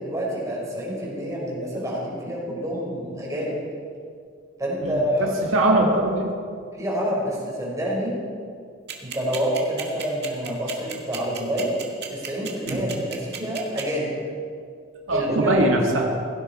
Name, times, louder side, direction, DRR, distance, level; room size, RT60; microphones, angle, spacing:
voice 1, 0.0-3.6 4.6-5.3 6.8-8.2 9.0-11.8 12.1-14.1 15.1-15.7, equal, 15° right, -4 dB, 4.6 m, -27 dB
voice 2, 4.8-6.3 12.7-12.8 15.1-16.1, right 1 dB, 85° right, 0 dB, 1.9 m, -22 dB
sound 1, 8.9-13.8, right 8 dB, 55° right, 2.0 m, -33 dB
17.0 x 16.0 x 4.3 m, 2.2 s
head